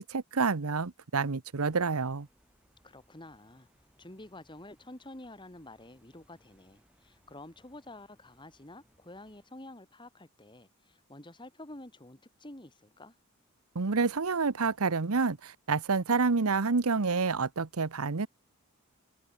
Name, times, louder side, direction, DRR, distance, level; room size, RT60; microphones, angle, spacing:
voice 1, 0.0-2.3 13.7-18.3, right 4 dB, 90° right, 0.9 m, -28 dB
sound 1, 1.5-9.5, equal, 5° right, 7.9 m, -68 dB
voice 2, 2.8-3.7 4.0-13.1, left 1 dB, 20° left, 2.3 m, -49 dB
head